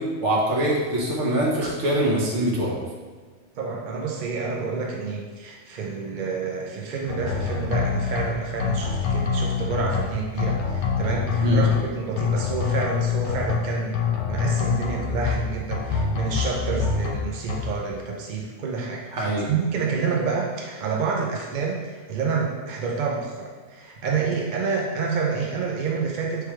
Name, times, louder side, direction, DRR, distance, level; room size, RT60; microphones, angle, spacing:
voice 1, 0.0-2.7 11.4-11.6 19.1-19.5, right 1 dB, 75° right, -4 dB, 1.2 m, -23 dB
voice 2, 3.6-26.5, right 4 dB, 55° right, -1 dB, 0.6 m, -28 dB
sound 1, 7.1-8.3 8.6-10.0 10.4-11.8 12.2-13.6 13.9-15.4 15.7-17.2 17.5-17.6, left 6 dB, 75° left, 0.9 m, -25 dB
4.6 x 3.3 x 3.1 m, 1.5 s
omnidirectional pair, 1.2 m